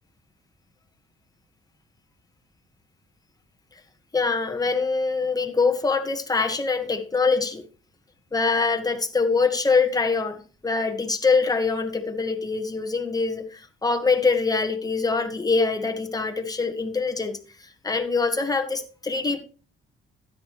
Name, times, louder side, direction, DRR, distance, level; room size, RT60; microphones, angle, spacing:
voice 1, 4.1-7.7 8.3-17.4 17.8-19.4, left 4 dB, 20° left, 5 dB, 1.6 m, -24 dB
13.0 x 9.6 x 3.2 m, 0.37 s
cardioid pair, 90°, 20 cm